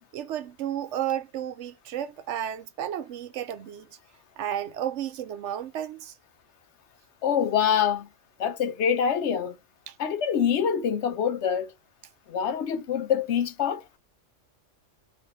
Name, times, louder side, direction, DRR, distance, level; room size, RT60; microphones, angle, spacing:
voice 1, 0.1-3.9 4.4-6.1 9.9-10.0, right 10 dB, 75° right, 0.9 m, -32 dB
voice 2, 7.2-8.1 8.4-9.6 10.0-11.7 12.3-13.8, left 8 dB, 70° left, 0.9 m, -25 dB
4.4 x 3.2 x 2.6 m
omnidirectional pair, 1.3 m